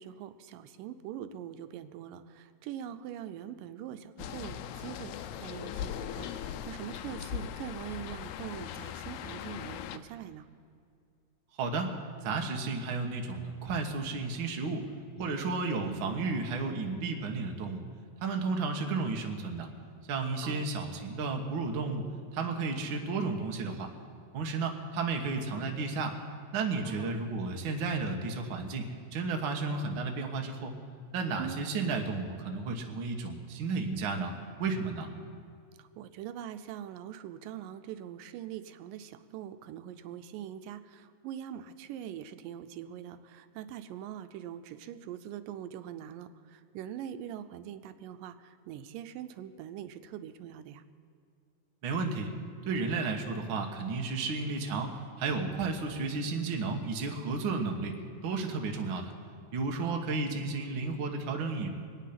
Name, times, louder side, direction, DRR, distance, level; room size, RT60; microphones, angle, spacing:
voice 1, 0.0-10.5 20.4-20.6 26.8-27.1 31.4-31.6 35.8-50.8 59.7-60.0, right 10 dB, 90° right, 11 dB, 2.4 m, -43 dB
sound 1, 4.2-10.0, left 9 dB, 85° left, 1.6 m, -39 dB
voice 2, 11.6-11.9 12.2-14.8 15.2-17.8 18.2-19.7 20.1-22.1 22.3-23.9 24.3-26.2 26.5-30.7 31.1-34.3 34.6-35.1 51.8-52.3 52.6-58.0 58.2-59.1 59.5-61.7, right 4 dB, 50° right, 3 dB, 1.5 m, -33 dB
24.0 x 9.3 x 5.9 m, 2.3 s
omnidirectional pair, 3.8 m